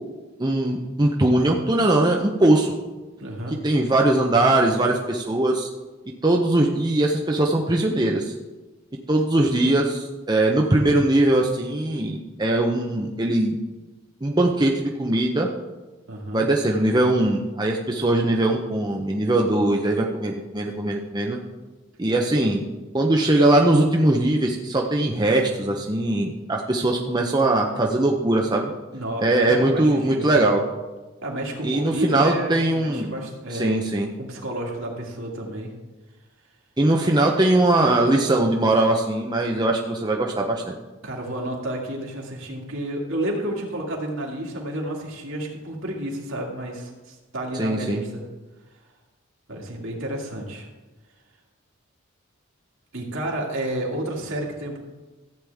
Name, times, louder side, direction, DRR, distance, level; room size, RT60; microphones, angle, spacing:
voice 1, 0.4-2.7 3.6-5.7 6.2-8.3 9.1-13.6 14.2-15.5 16.3-21.4 22.0-22.6 22.9-28.7 29.2-30.6 31.6-33.1 33.5-34.1 36.8-40.7 47.6-48.0, right 1 dB, 20° right, 0 dB, 0.7 m, -21 dB
voice 2, 3.2-3.6 16.1-16.4 28.9-30.5 31.2-33.8 34.2-35.7 41.0-48.2 49.5-50.7 52.9-54.8, right 1 dB, 70° right, -2 dB, 2.4 m, -31 dB
14.5 x 8.9 x 3.5 m, 1.2 s
head